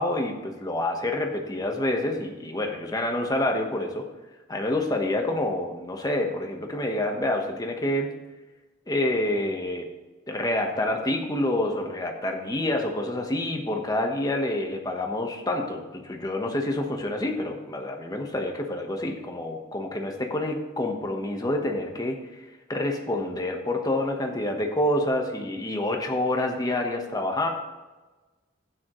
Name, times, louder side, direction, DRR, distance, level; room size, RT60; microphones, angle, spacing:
voice 1, 0.0-4.1 4.5-8.1 8.9-9.9 10.3-22.4 22.7-27.5, left 1 dB, 20° left, 2 dB, 1.2 m, -27 dB
11.5 x 9.1 x 3.2 m, 1.2 s
head